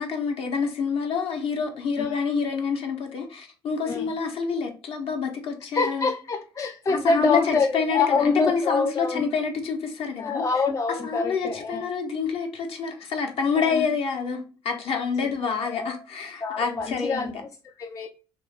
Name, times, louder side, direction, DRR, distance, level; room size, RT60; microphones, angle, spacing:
voice 1, 0.0-6.1 6.9-10.4 11.0-17.4, left 5 dB, 50° left, 0.8 m, -27 dB
voice 2, 5.8-9.2 10.2-11.9 13.5-13.9 15.2-15.3 15.7-16.0 16.4-18.1, left 4 dB, 25° left, 0.4 m, -26 dB
3.0 x 2.0 x 3.3 m
figure-of-eight pair, 50°, 13 cm